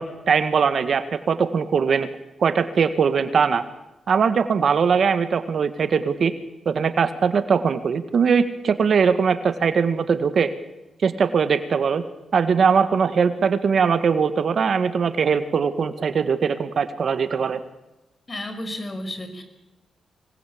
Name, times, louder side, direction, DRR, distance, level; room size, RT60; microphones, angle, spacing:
voice 1, 0.0-2.1 2.4-3.6 4.1-6.3 6.7-10.5 11.0-12.0 12.3-17.6, right 6 dB, 60° right, 10 dB, 1.7 m, -21 dB
voice 2, 18.3-19.4, left 1 dB, 30° left, 9 dB, 5.3 m, -32 dB
25.5 x 20.0 x 8.7 m, 0.97 s
cardioid pair, 75°, 0 cm